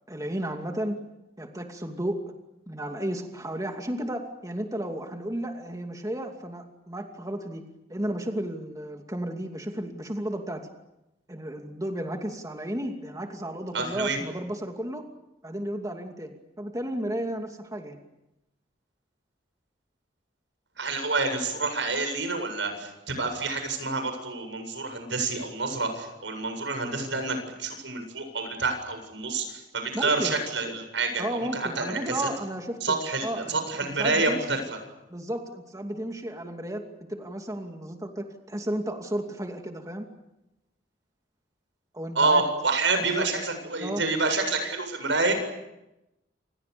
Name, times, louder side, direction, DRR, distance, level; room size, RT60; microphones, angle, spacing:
voice 1, 0.1-1.0 1.4-2.2 2.7-7.6 7.9-10.7 11.3-15.0 15.4-18.0 29.9-30.4 31.2-34.6 35.1-40.1 41.9-42.4 42.9-43.3 43.8-44.0, right 1 dB, 20° right, 3 dB, 2.6 m, -33 dB
voice 2, 13.7-14.2 20.8-31.2 31.5-32.3 32.8-34.6 42.1-45.3, right 3 dB, 90° right, 7 dB, 7.9 m, -28 dB
29.0 x 28.0 x 7.0 m, 0.92 s
head